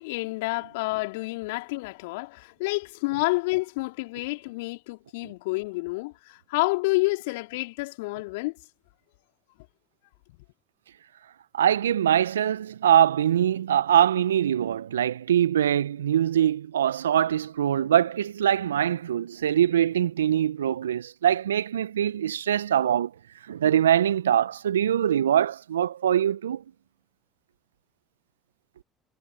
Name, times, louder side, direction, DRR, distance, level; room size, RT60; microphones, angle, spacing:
voice 1, 0.0-8.5, left 24 dB, 70° left, 3.1 m, -29 dB
voice 2, 11.5-23.1 23.5-26.6, right 10 dB, 80° right, 1.5 m, -23 dB
figure-of-eight pair, 60°, 0 cm